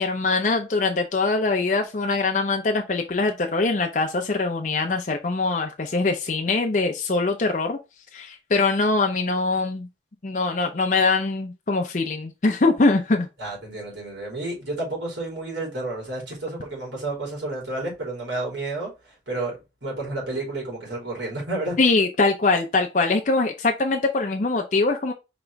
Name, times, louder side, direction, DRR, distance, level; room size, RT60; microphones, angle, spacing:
voice 1, 0.0-7.8 8.1-9.9 10.2-13.3 21.8-25.1, left 3 dB, 45° left, 0.5 m, -23 dB
voice 2, 13.4-19.6 19.8-21.8, right 2 dB, 75° right, 3.1 m, -31 dB
5.1 x 3.0 x 3.3 m
head